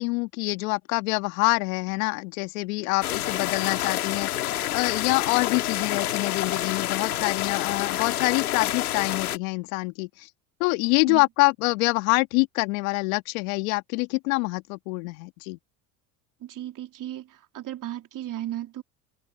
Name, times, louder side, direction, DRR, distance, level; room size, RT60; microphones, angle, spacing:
voice 1, 0.0-10.3 10.6-15.6, left 27 dB, 70° left, 2.2 m, -26 dB
sound 1, 3.0-9.4, left 13 dB, 90° left, 2.4 m, -28 dB
voice 2, 16.4-18.8, right 13 dB, 45° right, 3.3 m, -35 dB
open air
hypercardioid pair, 80°, 43 cm